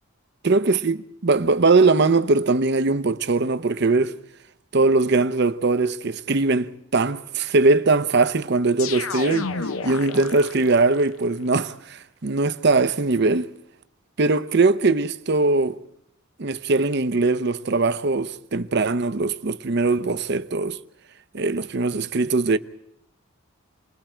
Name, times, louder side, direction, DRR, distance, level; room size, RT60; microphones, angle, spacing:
voice 1, 0.4-1.0 1.2-4.2 4.7-9.5 9.8-13.5 14.2-15.8 16.4-20.8 21.3-22.6, right 3 dB, 55° right, 0.7 m, -21 dB
sound 1, 8.8-11.0, left 4 dB, 75° left, 0.8 m, -30 dB
29.0 x 21.0 x 4.5 m
head